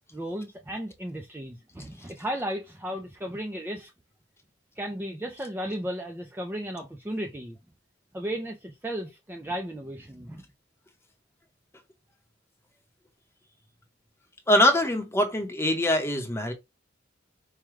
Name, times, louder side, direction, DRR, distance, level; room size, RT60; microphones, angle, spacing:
voice 1, 0.1-3.9 4.8-7.6 8.1-10.4, right 1 dB, 10° right, 0.4 m, -35 dB
voice 2, 14.5-16.5, left 1 dB, 15° left, 0.8 m, -23 dB
4.8 x 2.2 x 3.1 m
head